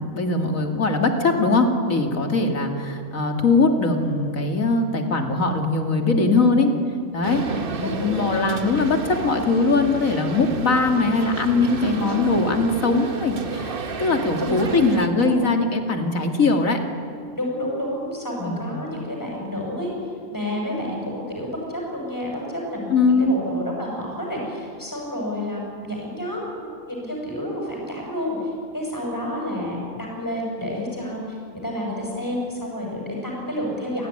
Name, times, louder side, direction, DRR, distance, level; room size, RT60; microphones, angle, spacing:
voice 1, 0.0-6.7 7.1-16.8 18.4-18.8 22.9-23.4, left 3 dB, 75° left, 4 dB, 2.9 m, -21 dB
voice 2, 6.0-6.5 8.0-8.2 11.7-12.4 14.4-14.5 14.8-15.5 17.3-19.9 20.3-31.4 31.6-34.1, left 1 dB, 15° left, -2 dB, 6.9 m, -30 dB
sound 1, 7.2-15.1, right 5 dB, 45° right, 1.3 m, -31 dB
28.5 x 18.0 x 9.9 m, 2.3 s
omnidirectional pair, 1.4 m